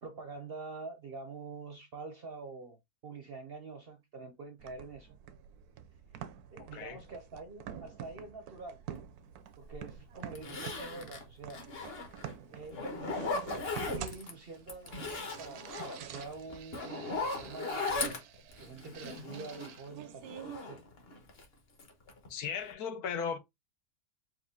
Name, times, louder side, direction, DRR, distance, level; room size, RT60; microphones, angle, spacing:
voice 1, 0.0-5.2 6.5-8.8 9.6-11.7 12.5-18.2 18.6-20.8, right 3 dB, 55° right, 0.7 m, -46 dB
sound 1, 4.6-20.6, right 9 dB, 75° right, 1.0 m, -48 dB
voice 2, 6.6-7.0 12.8-12.9 22.3-23.4, left 7 dB, 75° left, 1.2 m, -37 dB
Zipper (clothing), 9.7-9.8 10.3-12.3 12.7-14.3 14.7-19.8 20.2-21.4 21.8-22.3 22.6-22.7, left 3 dB, 40° left, 1.2 m, -38 dB
4.7 x 2.5 x 3.6 m
omnidirectional pair, 1.7 m